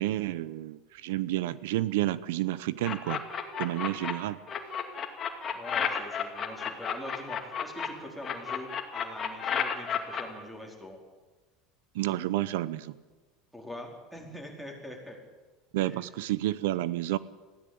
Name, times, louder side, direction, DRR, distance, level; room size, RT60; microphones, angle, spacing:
voice 1, 0.0-3.2 3.6-4.4 11.9-13.0 15.7-17.2, right 15 dB, 85° right, 17 dB, 0.8 m, -30 dB
sound 1, 2.8-4.1 4.5-7.9 8.2-10.2, left 7 dB, 25° left, 2.5 m, -31 dB
voice 2, 5.5-11.0 13.5-15.2 15.8-16.0, left 1 dB, ahead, 1 dB, 4.5 m, -43 dB
21.0 x 15.5 x 8.8 m, 1.2 s
supercardioid pair, 150°, 0 cm